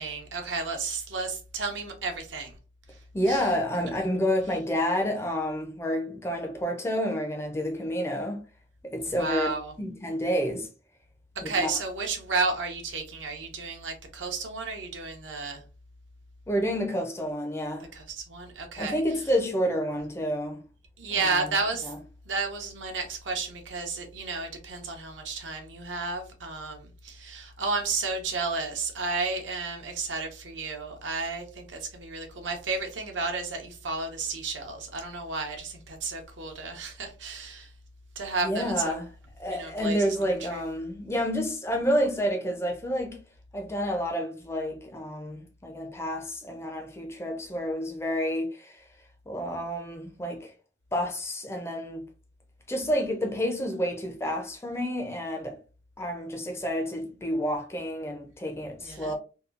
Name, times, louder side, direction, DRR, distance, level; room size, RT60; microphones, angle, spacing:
voice 1, 0.0-2.5 3.3-3.5 9.0-9.7 11.4-15.6 17.9-19.0 21.0-21.9 22.3-37.7 38.2-38.9 39.5-40.2 40.5-40.6 58.8-59.1, right 4 dB, 75° right, 0.7 m, -32 dB
voice 2, 3.1-8.4 8.9-9.5 9.8-10.7 11.4-11.8 16.5-17.9 18.8-20.6 21.2-21.5 21.8-22.0 38.4-39.1 39.4-43.2 43.5-48.8 49.3-50.5 50.9-52.1 52.7-55.6 56.0-59.1, equal, 15° left, 0.4 m, -29 dB
2.8 x 2.2 x 2.4 m
head